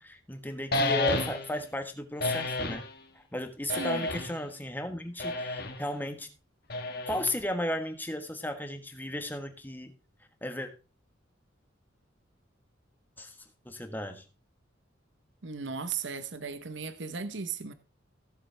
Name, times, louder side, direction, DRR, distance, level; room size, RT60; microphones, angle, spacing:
voice 1, 0.0-2.9 3.1-6.3 7.1-9.9 10.4-10.7 13.2-13.4 13.6-14.2, left 1 dB, 10° left, 1.4 m, -35 dB
sound 1, 0.7-1.6 2.2-2.9 3.7-4.4 5.2-5.8 6.7-7.4, left 2 dB, 55° left, 1.3 m, -31 dB
voice 2, 3.7-4.1 15.4-17.7, right 5 dB, 65° right, 0.9 m, -36 dB
16.0 x 7.4 x 3.3 m
head